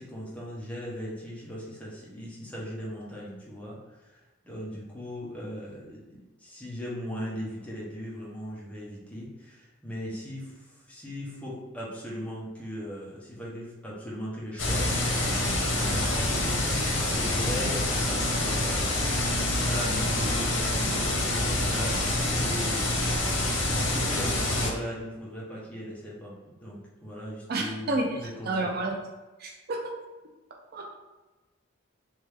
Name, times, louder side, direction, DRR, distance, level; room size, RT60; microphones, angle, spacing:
voice 1, 0.0-18.8 19.7-23.1 23.7-26.3 26.6-27.9 28.2-28.7, equal, 5° left, -6 dB, 1.0 m, -38 dB
sound 1, 14.6-24.7, left 1 dB, 75° left, 0.9 m, -26 dB
voice 2, 27.5-29.0 29.4-29.9 30.7-30.9, right 2 dB, 55° right, 1 dB, 0.5 m, -30 dB
3.3 x 3.3 x 3.4 m, 1.2 s
head